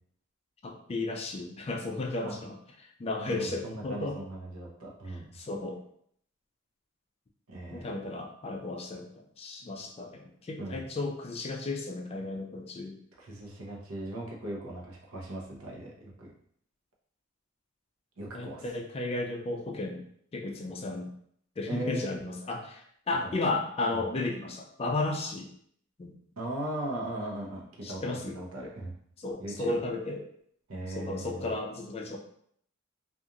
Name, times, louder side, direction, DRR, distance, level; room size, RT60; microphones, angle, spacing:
voice 1, 0.6-4.2 5.1-5.8 7.7-13.0 18.3-20.0 20.3-21.1 21.6-25.5 26.0-26.1 27.8-28.4 29.2-30.2 30.9-32.2, left 2 dB, 30° left, 2 dB, 0.3 m, -34 dB
voice 2, 3.2-5.3 7.5-8.0 10.6-10.8 13.2-16.3 18.2-18.6 21.7-22.2 23.1-23.3 23.9-24.0 26.4-28.9 29.4-29.7 30.7-31.5, right 1 dB, 85° right, -2 dB, 0.7 m, -38 dB
2.8 x 2.4 x 2.5 m, 0.66 s
head